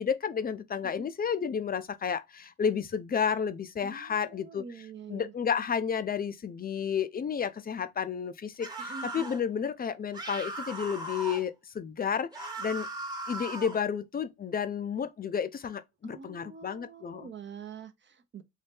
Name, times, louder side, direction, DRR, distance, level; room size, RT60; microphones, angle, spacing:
voice 1, 0.0-4.6 5.1-12.9 13.3-17.3, left 7 dB, 30° left, 0.4 m, -31 dB
voice 2, 3.8-5.3 8.8-9.3 16.0-18.4, right 6 dB, 40° right, 0.6 m, -46 dB
sound 1, 8.6-9.4 10.1-11.4 12.3-13.8, right 2 dB, 15° right, 1.0 m, -38 dB
3.2 x 2.7 x 3.3 m
cardioid pair, 90°, 30 cm